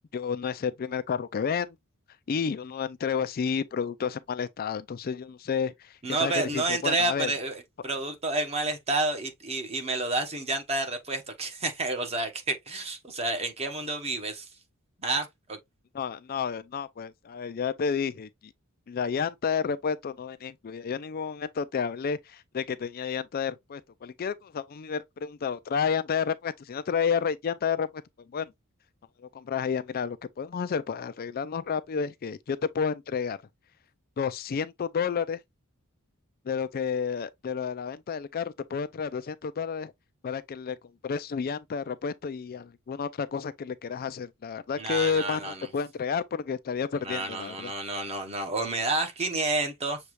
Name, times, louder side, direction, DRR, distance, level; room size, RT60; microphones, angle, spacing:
voice 1, 0.1-1.8 2.3-7.3 15.9-18.5 18.9-27.9 28.3-28.5 29.3-33.4 34.2-35.4 36.5-39.9 40.2-40.8 41.0-47.7, left 6 dB, 45° left, 0.4 m, -31 dB
voice 2, 6.0-14.5 15.0-15.6 44.8-45.7 47.0-50.0, right 2 dB, 30° right, 1.1 m, -30 dB
6.8 x 2.4 x 3.1 m
head